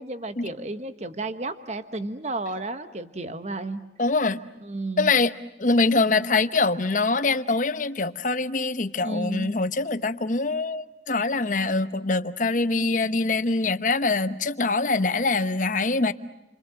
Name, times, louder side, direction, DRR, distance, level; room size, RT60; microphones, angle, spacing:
voice 1, 0.0-3.9 4.6-5.1 9.0-9.6, right 2 dB, 40° right, 1.2 m, -32 dB
voice 2, 4.0-4.4 5.0-5.3 5.6-16.1, left 3 dB, 45° left, 0.9 m, -24 dB
29.5 x 25.5 x 7.7 m
head